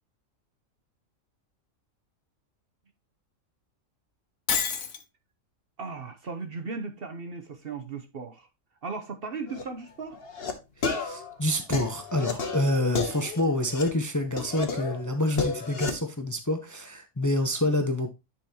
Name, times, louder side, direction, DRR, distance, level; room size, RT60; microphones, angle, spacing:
Shatter, 4.5-5.0, left 7 dB, 80° left, 1.4 m, -27 dB
voice 1, 5.8-8.5 8.8-10.2, right 4 dB, 50° right, 1.0 m, -36 dB
sound 1, 9.5-9.6 10.1-10.5 10.8-13.9 14.4-15.9, left 3 dB, 45° left, 1.4 m, -32 dB
voice 2, 10.8-18.1, left 1 dB, 15° left, 0.8 m, -27 dB
10.0 x 5.8 x 2.9 m
omnidirectional pair, 1.4 m